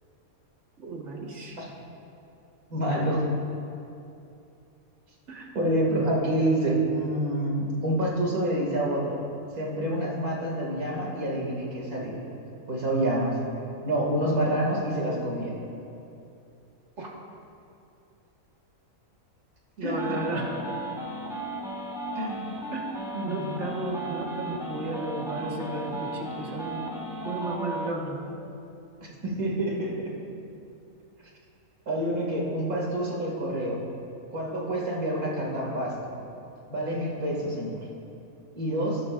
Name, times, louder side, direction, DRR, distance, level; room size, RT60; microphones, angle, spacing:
voice 1, 0.8-1.6 5.3-5.5 17.0-17.1 19.8-20.5 22.7-22.9 23.2-26.9 27.2-28.2, right 2 dB, 55° right, -2 dB, 2.0 m, -34 dB
voice 2, 2.7-3.2 5.5-9.2 9.5-12.2 12.7-13.4 13.8-15.5 17.0-17.1 19.8-20.2 22.1-22.5 23.1-23.6 29.2-30.1 31.9-33.8 34.3-35.9 36.7-37.8 38.5-39.0, right 1 dB, 85° right, -2 dB, 2.9 m, -27 dB
sound 1, 19.9-27.9, right 1 dB, ahead, 1.4 m, -35 dB
21.0 x 12.0 x 2.6 m, 2.7 s
omnidirectional pair, 1.5 m